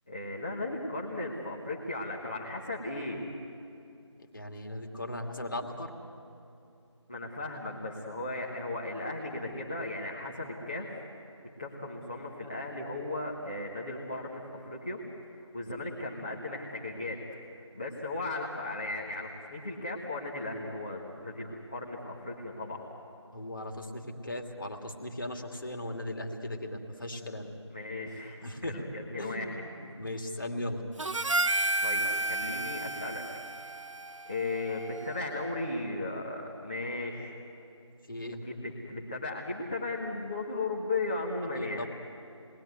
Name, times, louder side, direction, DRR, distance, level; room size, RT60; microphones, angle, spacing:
voice 1, 0.1-3.2 7.1-11.0 11.6-15.0 15.3-22.8 27.7-29.6 31.8-33.2 34.2-37.4 38.4-41.8, left 2 dB, 15° left, -4 dB, 1.4 m, -36 dB
voice 2, 4.3-5.9 23.3-27.5 28.4-28.9 29.2-30.8 38.1-38.4 41.6-41.9, left 1 dB, 45° left, 4 dB, 2.6 m, -38 dB
Harmonica, 31.0-35.5, right 2 dB, 85° right, 0.9 m, -32 dB
29.5 x 20.5 x 9.4 m, 2.7 s
figure-of-eight pair, 175°, 16 cm